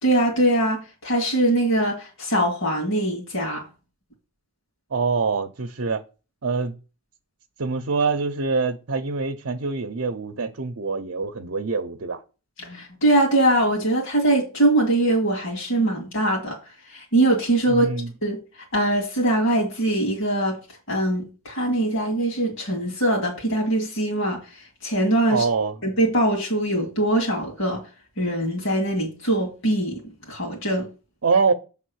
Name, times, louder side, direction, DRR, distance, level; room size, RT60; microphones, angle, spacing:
voice 1, 0.0-3.6 12.6-16.6 16.9-17.9 18.2-18.4 18.7-20.6 20.9-25.5 25.8-27.8 28.2-30.0 30.3-30.9, right 1 dB, 65° left, 2.1 m, -22 dB
voice 2, 4.9-6.0 6.4-6.8 7.6-12.2 17.7-18.1 25.3-25.7 31.2-31.5, right 4 dB, 60° right, 0.8 m, -24 dB
7.5 x 3.6 x 6.3 m
head